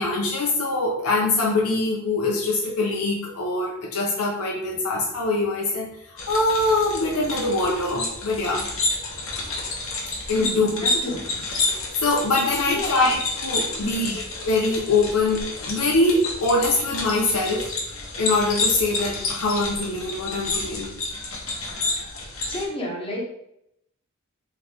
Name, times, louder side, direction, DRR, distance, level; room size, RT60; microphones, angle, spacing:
voice 1, 0.0-8.7 10.3-10.7 12.0-17.7 18.2-20.9, left 2 dB, 85° left, -3 dB, 0.7 m, -23 dB
sound 1, 6.2-22.6, left 2 dB, 65° left, 1.0 m, -30 dB
voice 2, 10.4-11.4 12.7-13.1 13.8-14.2 22.4-23.2, left 1 dB, 25° left, -2 dB, 1.0 m, -31 dB
3.9 x 3.1 x 3.4 m, 0.77 s
head